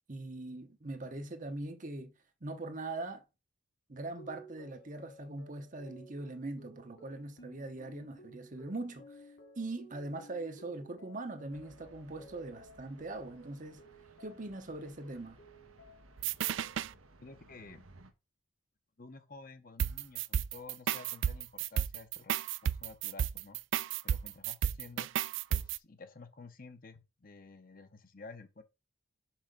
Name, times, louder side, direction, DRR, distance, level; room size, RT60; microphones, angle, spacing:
voice 1, 0.1-2.1 2.4-3.2 3.9-9.2 9.6-13.8 14.2-15.4, right 2 dB, 40° right, 0.9 m, -41 dB
sound 1, 4.2-14.6 15.0-16.2 16.6-17.1, right 1 dB, 60° left, 2.5 m, -56 dB
sound 2, 11.5-18.1, right 2 dB, 80° right, 1.1 m, -60 dB
sound 3, 16.2-16.9 19.8-25.8, right 9 dB, 65° right, 0.3 m, -33 dB
voice 2, 17.2-17.8 19.0-22.3 22.6-23.6 24.0-25.1 25.5-28.6, left 3 dB, 45° left, 1.0 m, -51 dB
5.9 x 5.7 x 5.2 m
head